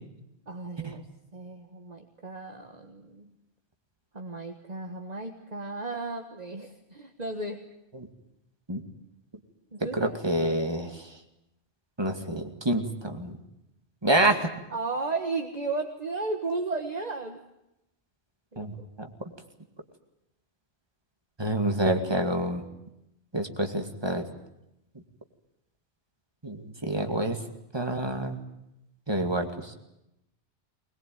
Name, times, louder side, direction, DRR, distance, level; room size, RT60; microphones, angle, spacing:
voice 1, 0.5-1.0 1.3-3.3 4.1-7.7 9.7-10.1 14.7-17.4 18.5-18.9, right 3 dB, 40° right, 3 dB, 1.6 m, -34 dB
voice 2, 10.0-11.1 12.0-13.4 14.0-14.5 18.6-19.3 21.4-22.6 23.3-24.2 26.4-27.4 27.7-28.4 29.1-29.8, right 1 dB, 20° right, 5 dB, 2.3 m, -28 dB
21.5 x 21.0 x 9.3 m, 0.85 s
omnidirectional pair, 1.1 m